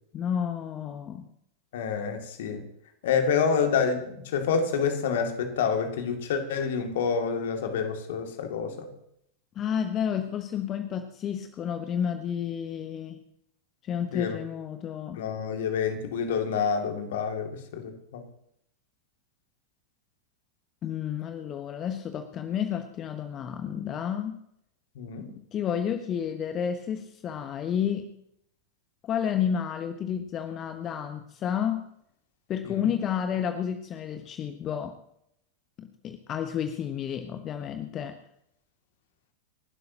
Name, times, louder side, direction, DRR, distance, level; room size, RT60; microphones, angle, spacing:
voice 1, 0.1-1.3 9.5-13.2 13.8-15.2 20.8-24.4 25.3-28.1 29.0-31.9 32.5-35.0 35.8-38.2, left 8 dB, 30° left, 8 dB, 1.1 m, -31 dB
voice 2, 1.7-2.6 3.0-8.9 14.1-14.4 15.1-18.2 25.0-25.3 32.6-32.9, left 6 dB, 55° left, 5 dB, 2.4 m, -28 dB
29.0 x 12.0 x 2.9 m, 0.75 s
figure-of-eight pair, 90°, 0 cm